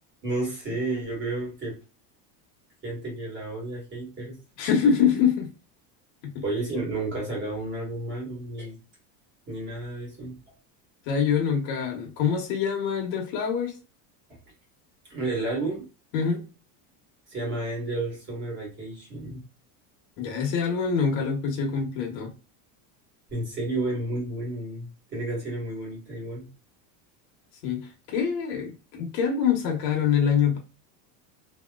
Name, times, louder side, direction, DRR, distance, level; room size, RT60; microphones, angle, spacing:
voice 1, 0.2-1.8 2.8-4.4 6.4-8.8 9.5-10.4 15.1-15.9 17.3-19.4 23.3-26.5, right 2 dB, 25° right, 1.4 m, -31 dB
voice 2, 4.6-5.5 6.2-6.4 11.1-13.7 16.1-16.4 20.2-22.3 27.6-30.6, left 7 dB, 70° left, 1.1 m, -25 dB
2.9 x 2.8 x 2.2 m
cardioid pair, 175°, 46 cm